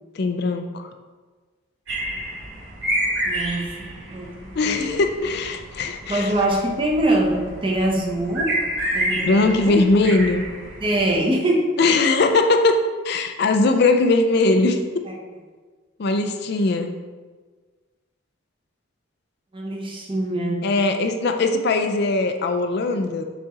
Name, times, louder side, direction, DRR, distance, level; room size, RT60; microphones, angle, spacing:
voice 1, 0.2-0.9 4.6-6.3 9.2-10.4 11.8-12.7 13.0-14.8 16.0-16.9 20.6-23.2, left 3 dB, 50° left, 6 dB, 0.4 m, -20 dB
sound 1, 1.9-11.1, right 1 dB, 65° right, 2.0 m, -29 dB
voice 2, 3.3-4.8 6.1-8.6 8.9-9.8 10.8-11.8 15.0-15.2 19.5-20.8, right 1 dB, 25° right, 0 dB, 0.9 m, -24 dB
7.3 x 4.2 x 3.7 m, 1.4 s
head